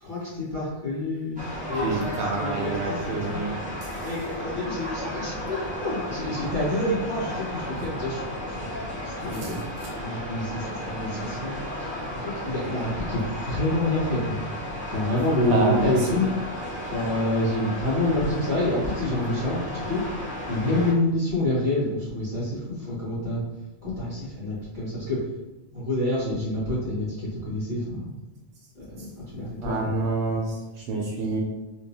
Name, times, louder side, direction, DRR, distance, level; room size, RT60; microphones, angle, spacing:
voice 1, 0.0-2.1 2.3-3.4 4.0-8.8 9.2-9.6 10.0-11.6 12.1-14.4 14.9-16.2 16.9-20.0 20.5-23.4 23.8-25.2 25.7-28.1 28.8-29.9, left 1 dB, 30° right, -10 dB, 1.7 m, -27 dB
sound 1, 1.4-20.9, left 1 dB, 10° right, 0.8 m, -34 dB
voice 2, 1.7-3.5 9.4-9.5 15.4-16.2 29.6-31.4, right 3 dB, 85° right, -2 dB, 0.9 m, -28 dB
3.4 x 3.0 x 2.7 m, 1.0 s
omnidirectional pair, 1.1 m